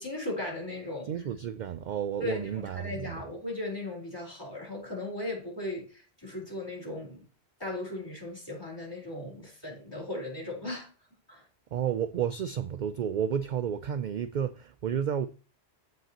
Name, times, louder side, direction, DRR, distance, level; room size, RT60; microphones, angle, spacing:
voice 1, 0.0-1.1 2.2-7.3 7.6-10.9 11.3-11.4, left 1 dB, 20° left, 4.2 m, -37 dB
voice 2, 1.1-3.2 11.7-15.3, right 8 dB, 55° right, 0.5 m, -31 dB
15.0 x 5.3 x 2.9 m
omnidirectional pair, 1.1 m